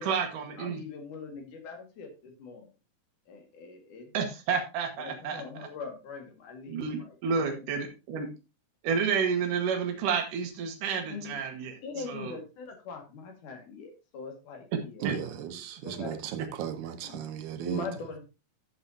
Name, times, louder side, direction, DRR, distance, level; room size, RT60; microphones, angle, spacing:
voice 1, 0.0-0.8 4.1-5.4 6.7-8.3 8.8-11.8 12.1-12.3 15.0-15.2, right 6 dB, 90° right, 2.9 m, -30 dB
voice 2, 0.6-2.7 3.3-4.1 5.0-7.8 11.0-11.4 11.8-16.1 17.0-17.2 17.6-18.3, left 4 dB, 75° left, 3.5 m, -42 dB
voice 3, 15.0-17.8, right 9 dB, 75° right, 2.4 m, -35 dB
12.5 x 8.0 x 2.8 m
omnidirectional pair, 3.6 m